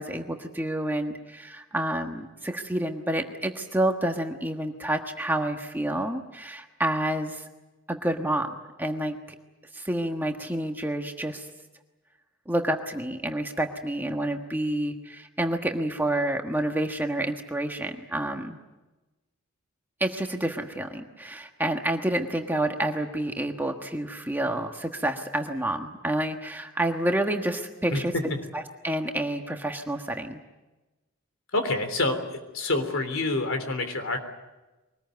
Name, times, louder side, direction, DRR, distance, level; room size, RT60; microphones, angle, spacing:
voice 1, 0.0-7.4 7.9-8.5 8.8-9.2 9.7-11.5 12.5-18.6 20.0-28.1 28.5-30.4, right 1 dB, 10° right, 3 dB, 1.4 m, -29 dB
voice 2, 31.5-34.2, left 2 dB, 70° left, 7 dB, 3.4 m, -27 dB
23.5 x 20.0 x 9.3 m, 1.1 s
head